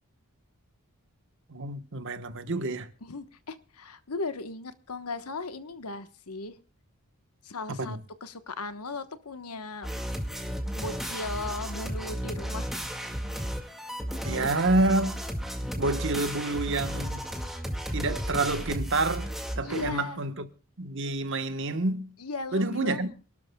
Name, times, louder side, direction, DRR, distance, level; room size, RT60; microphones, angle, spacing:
voice 1, 1.5-2.9 7.7-8.0 14.2-15.2 15.8-17.3 17.9-20.5 20.8-22.1 22.5-23.1, right 2 dB, 55° right, 1.2 m, -28 dB
voice 2, 3.0-6.6 7.4-9.9 10.7-12.7 19.6-20.2 22.2-23.1, left 3 dB, 85° left, 1.2 m, -37 dB
sound 1, 9.8-19.9, equal, ahead, 2.0 m, -34 dB
27.0 x 12.5 x 2.3 m
head